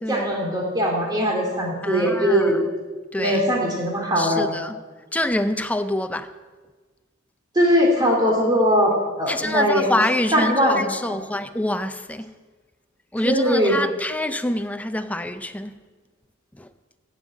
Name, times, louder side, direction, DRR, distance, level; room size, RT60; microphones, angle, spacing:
voice 1, 0.1-2.6 3.2-4.5 7.5-9.9 10.3-11.2 13.2-13.8, equal, 20° right, 2.6 m, -20 dB
voice 2, 1.8-2.5 3.1-3.4 4.2-4.8 5.1-6.3 9.3-12.3 13.1-15.7 16.6-16.7, left 1 dB, 5° left, 0.5 m, -26 dB
15.0 x 5.6 x 8.3 m
head